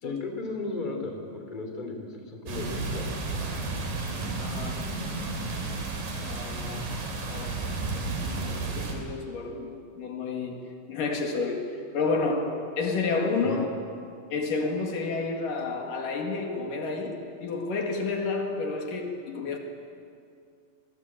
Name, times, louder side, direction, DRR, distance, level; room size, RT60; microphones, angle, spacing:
voice 1, 0.0-3.5 13.4-13.6, left 3 dB, 15° left, 3 dB, 2.9 m, -35 dB
sound 1, 2.5-8.9, right 3 dB, 70° right, 5.0 m, -32 dB
voice 2, 4.4-5.0 6.2-7.0 7.3-7.7 8.0-13.7 14.3-19.6, left 4 dB, 70° left, 2 dB, 3.7 m, -31 dB
25.0 x 21.0 x 8.7 m, 2.3 s
omnidirectional pair, 4.1 m